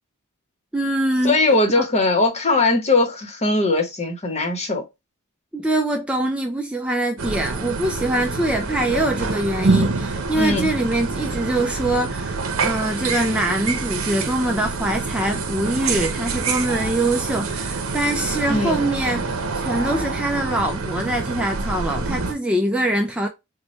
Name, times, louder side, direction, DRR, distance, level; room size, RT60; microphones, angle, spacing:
voice 1, 0.7-1.4 1.8-1.9 5.5-23.3, right 1 dB, 5° right, 0.4 m, -23 dB
voice 2, 1.2-4.8 10.4-10.7 18.5-18.8, left 2 dB, 30° left, 0.9 m, -20 dB
sound 1, 7.2-22.3, right 4 dB, 85° right, 0.7 m, -26 dB
4.1 x 2.2 x 3.1 m
head